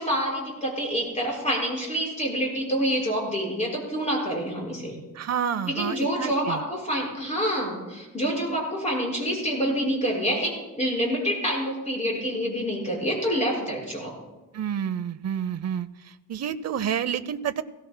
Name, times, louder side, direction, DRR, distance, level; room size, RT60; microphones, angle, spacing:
voice 1, 0.0-4.9 5.7-14.1, equal, 20° left, -3 dB, 5.5 m, -27 dB
voice 2, 5.1-6.6 14.5-17.6, right 8 dB, 50° right, 11 dB, 0.6 m, -29 dB
21.0 x 17.0 x 2.2 m, 1.1 s
wide cardioid pair, 135°, 32 cm